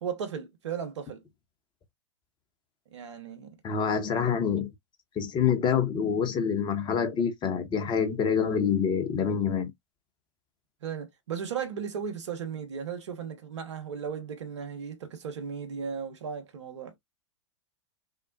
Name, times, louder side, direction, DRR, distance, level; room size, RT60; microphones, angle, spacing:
voice 1, 0.0-1.2 2.9-3.6 10.8-17.0, right 7 dB, 70° right, 1.2 m, -36 dB
voice 2, 3.6-4.7 5.2-9.7, left 7 dB, 30° left, 1.1 m, -26 dB
6.2 x 2.1 x 2.7 m
figure-of-eight pair, 95°, 16 cm